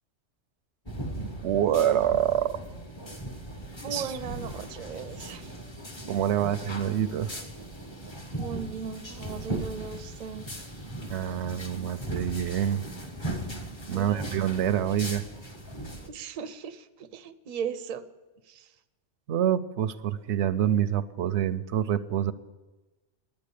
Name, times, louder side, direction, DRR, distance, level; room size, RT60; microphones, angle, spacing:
sound 1, 0.9-16.1, right 1 dB, 25° left, 0.9 m, -38 dB
voice 1, 1.2-2.6 3.9-4.2 6.1-7.3 11.1-12.8 13.9-15.2 19.3-22.3, right 10 dB, 75° right, 14 dB, 0.9 m, -26 dB
voice 2, 3.8-5.5 8.3-10.5 13.9-14.3 16.1-18.1 18.5-18.7, right 6 dB, 50° right, 10 dB, 0.6 m, -37 dB
10.5 x 8.9 x 8.5 m, 1.2 s
omnidirectional pair, 1.2 m